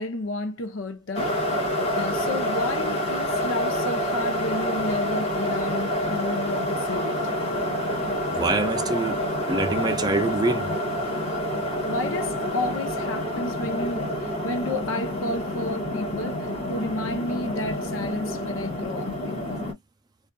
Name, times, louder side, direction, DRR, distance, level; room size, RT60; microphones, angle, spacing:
voice 1, 0.0-1.3 1.9-7.3 11.9-19.4, left 2 dB, 80° left, 0.6 m, -31 dB
sound 1, 1.1-19.7, equal, 30° left, 1.3 m, -28 dB
voice 2, 8.3-9.2 9.5-10.7, right 2 dB, 20° right, 0.5 m, -25 dB
2.6 x 2.4 x 2.2 m
head